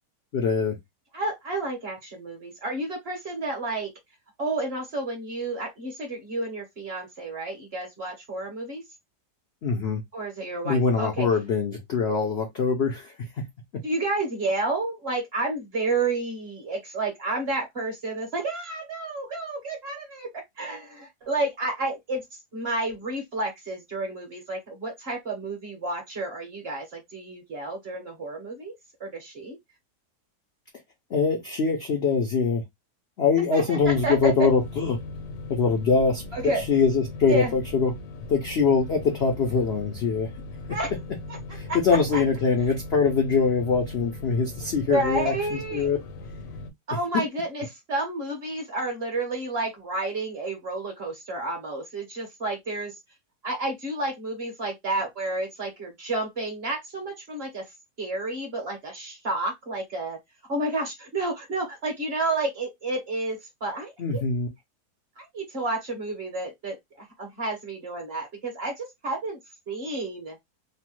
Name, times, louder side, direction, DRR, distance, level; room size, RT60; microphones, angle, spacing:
voice 1, 0.3-0.8 9.6-10.0 10.6-13.1 31.1-32.6 33.2-35.0 35.5-36.2 36.5-37.9 38.3-40.3 41.5-46.0 64.0-64.5, left 5 dB, 65° left, 0.6 m, -23 dB
voice 2, 1.1-3.9 4.4-8.8 10.1-11.3 13.8-20.3 20.6-22.2 22.5-28.7 29.0-29.6 33.5-34.5 36.3-36.6 37.3-37.5 40.7-40.9 41.7-41.8 42.1-42.2 44.9-45.9 46.9-53.0 53.4-57.7 58.0-60.2 60.5-64.2 65.2-69.4 69.7-70.4, right 2 dB, 45° right, 0.9 m, -30 dB
sound 1, 33.8-46.7, left 2 dB, 85° left, 1.3 m, -39 dB
3.1 x 2.1 x 2.9 m
omnidirectional pair, 1.8 m